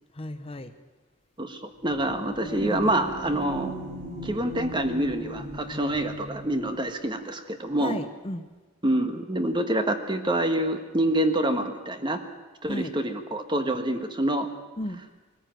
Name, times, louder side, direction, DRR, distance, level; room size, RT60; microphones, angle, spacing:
voice 1, 0.1-0.7 2.4-2.9 3.2-3.4 7.8-8.4 12.7-12.9 14.8-15.0, left 1 dB, 30° left, 9 dB, 0.8 m, -34 dB
voice 2, 1.4-3.7 4.2-8.0 8.8-12.2 12.6-14.5, right 1 dB, 25° right, 7 dB, 1.3 m, -26 dB
sound 1, 1.8-6.6, equal, 60° right, 5.6 m, -38 dB
21.5 x 14.0 x 9.1 m, 1.3 s
head